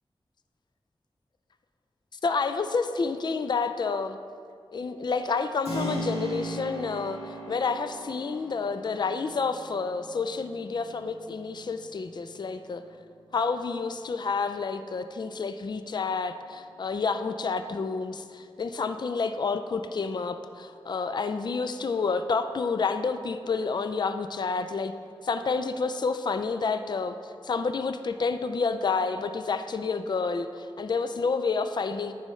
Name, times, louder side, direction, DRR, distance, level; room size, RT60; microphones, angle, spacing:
voice 1, 2.1-4.2 4.7-12.8 13.3-24.9 25.2-32.1, left 4 dB, 45° left, 9 dB, 0.3 m, -29 dB
Keyboard (musical), 5.6-14.2, right 1 dB, 85° left, 1.6 m, -39 dB
9.8 x 5.5 x 3.1 m, 2.3 s
wide cardioid pair, 65°, 10 cm